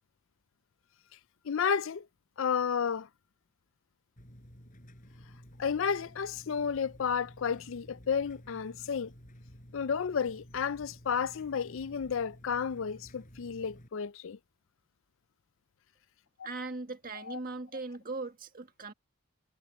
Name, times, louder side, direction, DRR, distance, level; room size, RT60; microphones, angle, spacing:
voice 1, 1.4-2.1 2.4-3.1 5.6-9.1 9.7-14.4 17.3-17.4, left 6 dB, 60° left, 0.4 m, -32 dB
sound 1, 4.2-13.9, equal, 35° left, 6.9 m, -53 dB
voice 2, 16.4-18.9, right 3 dB, 40° right, 1.8 m, -39 dB
head